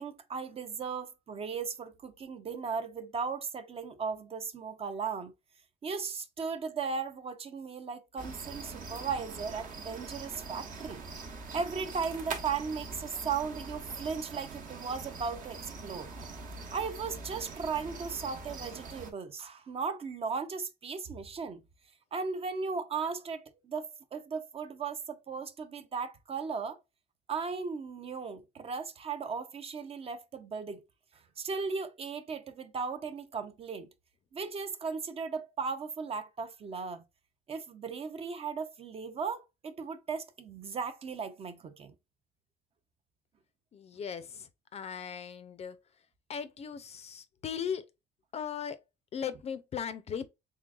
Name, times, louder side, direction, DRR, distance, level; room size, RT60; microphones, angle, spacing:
voice 1, 0.0-5.3 5.8-11.0 11.5-16.1 16.7-21.6 22.1-26.8 27.3-30.8 31.4-33.9 34.3-37.0 37.5-41.9, right 5 dB, 35° right, 0.5 m, -36 dB
sound 1, 8.2-19.1, right 4 dB, 50° right, 1.0 m, -43 dB
voice 2, 43.7-45.8 46.3-47.9 48.3-48.8 49.1-50.3, left 7 dB, 40° left, 0.4 m, -38 dB
3.7 x 3.3 x 2.3 m
cardioid pair, 110°, 17 cm